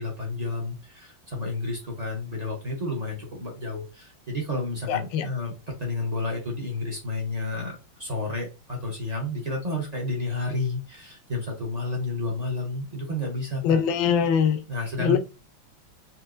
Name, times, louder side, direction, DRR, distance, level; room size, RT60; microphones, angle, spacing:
voice 1, 0.0-5.5 5.8-13.8 14.7-15.2, left 2 dB, 35° right, 0.6 m, -31 dB
voice 2, 4.9-5.3 13.6-14.6 15.0-15.2, left 7 dB, 75° left, 1.3 m, -22 dB
4.3 x 2.6 x 2.5 m
omnidirectional pair, 2.2 m